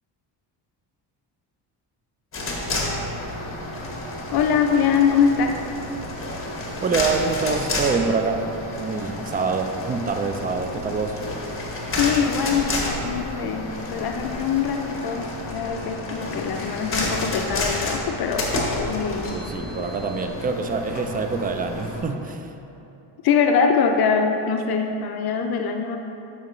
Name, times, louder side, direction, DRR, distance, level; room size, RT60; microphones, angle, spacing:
sound 1, 2.3-22.0, left 2 dB, 30° left, 1.2 m, -30 dB
voice 1, 4.3-5.6 12.0-18.5 18.7-19.3 23.2-26.0, left 6 dB, 60° left, 4 dB, 0.5 m, -23 dB
voice 2, 6.8-8.5 8.8-11.2 19.2-22.5, right 4 dB, 20° right, 6 dB, 0.3 m, -25 dB
7.5 x 5.6 x 3.1 m, 2.9 s
cardioid pair, 115°, 42 cm